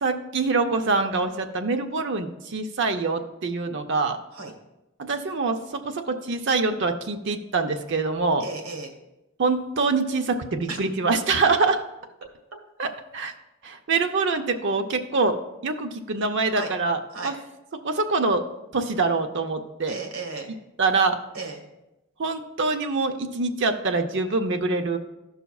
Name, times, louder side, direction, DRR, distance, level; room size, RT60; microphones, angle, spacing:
voice 1, 0.0-4.2 5.1-8.4 9.4-11.8 12.8-13.3 13.6-15.4 15.6-17.3 17.8-18.4 18.7-20.0 20.8-21.2 22.2-25.0, right 3 dB, 55° right, 6 dB, 0.5 m, -25 dB
voice 2, 8.4-8.9 10.7-10.8 16.5-16.7 17.1-17.4 19.9-20.5 21.3-21.6, right 3 dB, 75° right, 3 dB, 1.3 m, -34 dB
14.0 x 5.6 x 2.3 m, 0.96 s
head